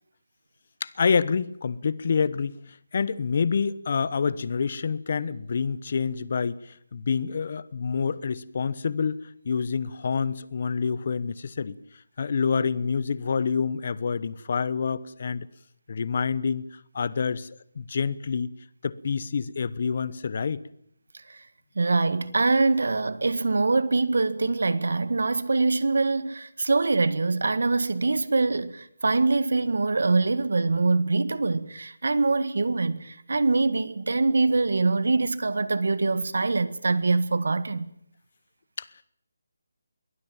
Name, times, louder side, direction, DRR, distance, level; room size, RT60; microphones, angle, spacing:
voice 1, 0.8-11.8 12.2-15.5 15.9-18.5 18.8-20.6 38.8-38.9, left 5 dB, 40° left, 1.0 m, -27 dB
voice 2, 21.8-37.9, right 3 dB, 70° right, 1.8 m, -24 dB
22.5 x 16.5 x 8.9 m
hypercardioid pair, 175°, 0 cm